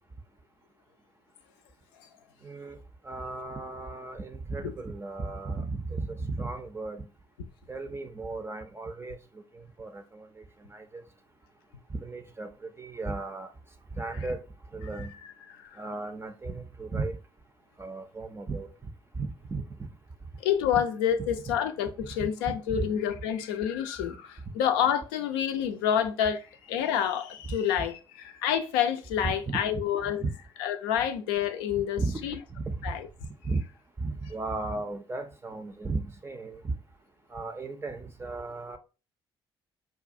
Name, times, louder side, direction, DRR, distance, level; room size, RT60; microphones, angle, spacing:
voice 1, 2.4-2.8 3.0-7.0 7.7-9.2 9.5-10.3 10.7-11.0 11.9-12.5 12.8-13.5 13.9-14.4 14.7-15.1 15.8-17.2 17.8-18.7 19.2-19.9 21.5-21.6 22.2-22.3 22.7-22.9 29.2-29.6 30.0-30.3 32.0-32.2 32.6-32.8 33.4-33.6 34.0-36.7 37.3-38.8, right 3 dB, 20° right, 0.5 m, -35 dB
voice 2, 15.5-15.8 20.4-30.2 30.6-32.4 32.8-33.1, left 9 dB, 65° left, 0.4 m, -28 dB
5.0 x 2.2 x 2.6 m
figure-of-eight pair, 45°, 13 cm